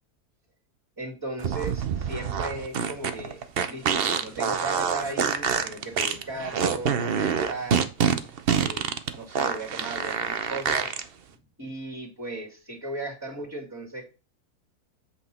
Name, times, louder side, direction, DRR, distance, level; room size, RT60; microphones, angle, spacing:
voice 1, 1.0-3.4 3.7-7.9 8.5-8.8 9.1-10.9 11.6-14.1, right 2 dB, 10° right, -4 dB, 2.3 m, -36 dB
sound 1, 1.4-11.0, right 7 dB, 50° right, 0.7 m, -26 dB
8.2 x 5.7 x 4.2 m, 0.32 s
omnidirectional pair, 1.7 m